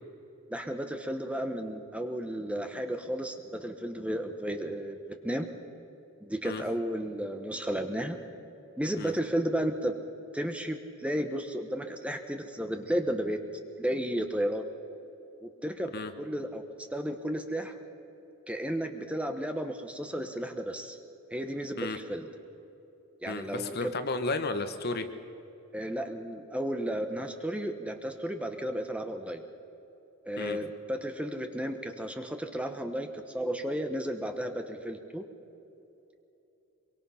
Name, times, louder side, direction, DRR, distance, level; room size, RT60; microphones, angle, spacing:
voice 1, 0.5-5.5 6.2-8.2 8.8-10.0 10.3-13.4 13.8-14.6 15.4-16.6 16.9-17.7 18.5-21.0 21.3-22.3 23.2-23.9 25.7-29.4 30.2-35.2, equal, 5° right, 6 dB, 1.0 m, -33 dB
voice 2, 23.3-25.1 30.4-30.6, left 3 dB, 45° left, 8 dB, 1.2 m, -33 dB
24.0 x 23.5 x 5.7 m, 3.0 s
head